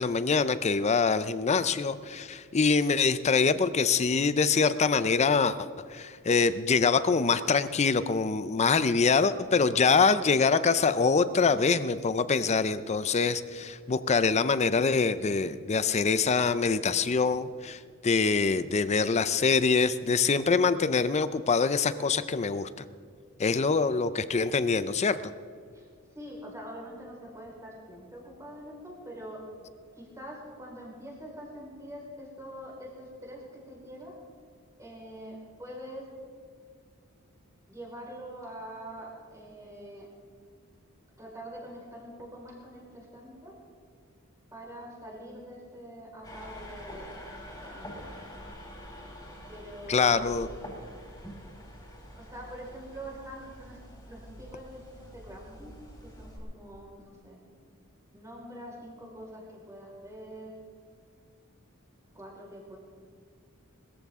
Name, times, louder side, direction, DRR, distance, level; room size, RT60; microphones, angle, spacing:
voice 1, 0.0-22.7 23.4-25.2 49.9-50.5, left 5 dB, 30° left, 14 dB, 0.5 m, -25 dB
voice 2, 26.1-29.4 30.0-34.1 34.8-36.1 37.7-40.1 41.2-43.5 44.5-47.1 47.5-48.1 49.5-50.3 52.1-53.8 54.1-55.7 56.0-57.4 58.1-60.5 62.1-62.8, equal, 15° right, -3 dB, 4.7 m, -44 dB
sound 1, 46.2-56.4, equal, 15° left, 4.5 m, -46 dB
21.5 x 14.0 x 3.6 m, 2.1 s
head